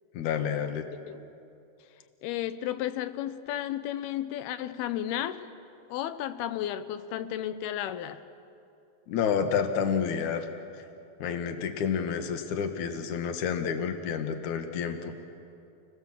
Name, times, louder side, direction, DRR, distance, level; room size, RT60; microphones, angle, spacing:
voice 1, 0.1-0.9 9.1-10.5 10.7-10.8 11.2-15.1, left 7 dB, 60° left, 6 dB, 2.5 m, -29 dB
voice 2, 2.2-5.4 5.9-8.2, left 11 dB, 85° left, 12 dB, 2.8 m, -33 dB
29.5 x 19.0 x 7.4 m, 2.6 s
omnidirectional pair, 4.4 m